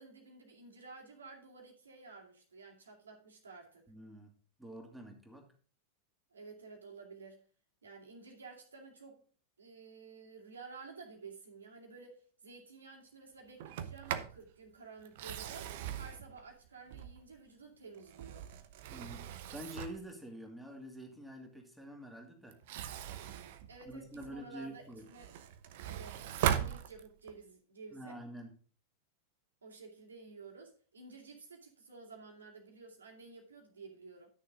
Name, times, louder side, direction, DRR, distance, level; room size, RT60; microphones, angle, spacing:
voice 1, 0.0-3.9 6.3-7.4 7.8-9.2 9.6-18.5 23.7-25.3 25.8-28.2 29.6-34.3, right 4 dB, 70° right, 2.3 m, -52 dB
voice 2, 3.9-4.3 4.6-5.5 18.9-22.6 23.9-25.1 27.9-28.5, equal, ahead, 2.5 m, -47 dB
Sliding door, 13.6-14.4 15.1-17.4 17.9-20.1 22.5-24.4 24.9-27.4, right 10 dB, 50° right, 0.8 m, -39 dB
11.5 x 6.6 x 3.7 m
figure-of-eight pair, 90°, 0 cm